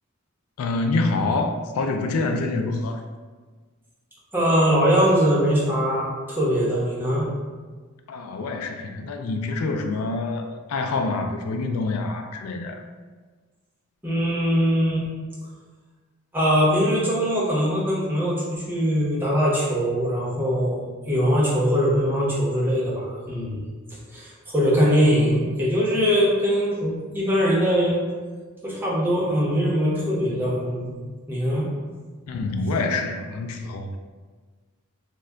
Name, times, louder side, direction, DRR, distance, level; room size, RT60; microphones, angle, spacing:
voice 1, 0.6-3.0 8.1-12.8 32.3-34.0, left 3 dB, 75° left, 5 dB, 0.3 m, -26 dB
voice 2, 4.3-7.3 14.0-15.1 16.3-23.6 24.1-28.0 28.6-31.0 31.3-31.7, equal, 10° right, -6 dB, 0.8 m, -22 dB
3.3 x 2.1 x 3.6 m, 1.4 s
head